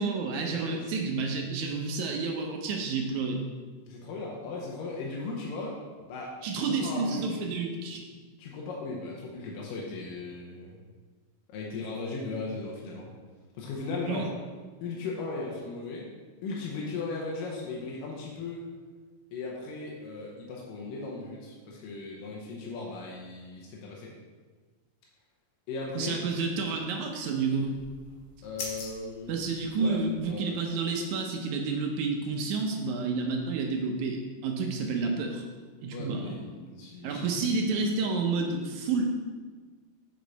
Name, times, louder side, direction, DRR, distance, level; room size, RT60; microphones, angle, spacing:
voice 1, 0.0-3.4 6.4-8.0 14.1-14.3 26.0-27.8 29.3-35.4 35.8-36.3 37.0-39.0, right 4 dB, 75° right, 2 dB, 1.9 m, -30 dB
voice 2, 0.6-1.2 3.9-5.8 6.1-7.4 8.4-10.8 11.5-13.1 13.6-14.3 14.8-16.1 16.4-18.7 19.3-24.1 25.7-26.3 28.4-29.3 29.8-30.0 30.3-30.5 35.9-37.5, left 3 dB, 90° left, -3 dB, 2.5 m, -37 dB
sound 1, 27.5-30.3, left 3 dB, 65° left, 2.8 m, -44 dB
6.6 x 6.1 x 4.0 m, 1.4 s
omnidirectional pair, 3.8 m